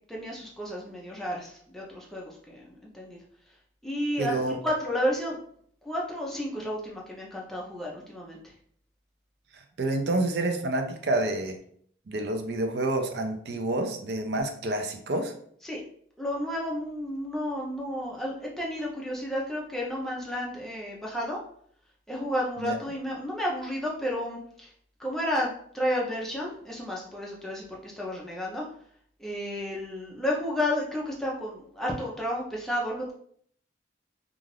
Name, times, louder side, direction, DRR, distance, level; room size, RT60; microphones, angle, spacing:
voice 1, 0.1-3.2 3.8-5.4 5.8-8.5 15.6-15.8 16.2-21.4 22.1-24.7 25.0-28.7 29.2-33.1, equal, ahead, -4 dB, 0.5 m, -32 dB
voice 2, 4.2-4.6 9.8-11.6 12.1-15.3 22.6-22.8, right 2 dB, 65° right, 4 dB, 0.4 m, -28 dB
2.4 x 2.4 x 3.2 m, 0.62 s
head